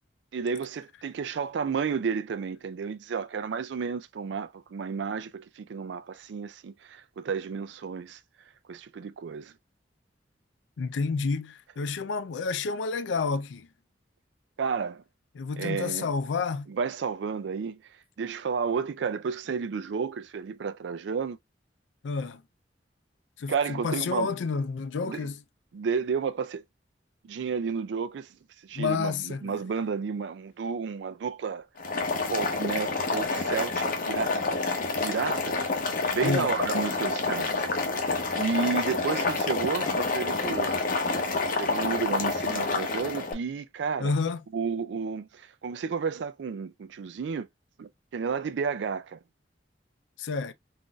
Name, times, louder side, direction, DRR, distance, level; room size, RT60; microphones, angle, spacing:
voice 1, 0.3-8.2 8.7-9.5 14.6-15.0 15.6-16.1 16.7-17.8 18.2-21.4 23.5-24.3 25.0-25.2 25.7-26.6 27.2-28.3 28.6-31.7 32.1-35.6 35.9-37.7 38.4-40.7 41.6-44.1 44.5-47.5 47.8-49.2, right 5 dB, 70° right, 0.4 m, -32 dB
voice 2, 10.8-13.7 15.3-16.7 22.0-22.4 23.4-25.4 28.7-29.6 36.2-36.5 44.0-44.4 50.2-50.5, left 4 dB, 90° left, 0.4 m, -30 dB
Boiling, 31.8-43.3, left 3 dB, 50° left, 0.7 m, -28 dB
3.8 x 2.6 x 2.2 m
head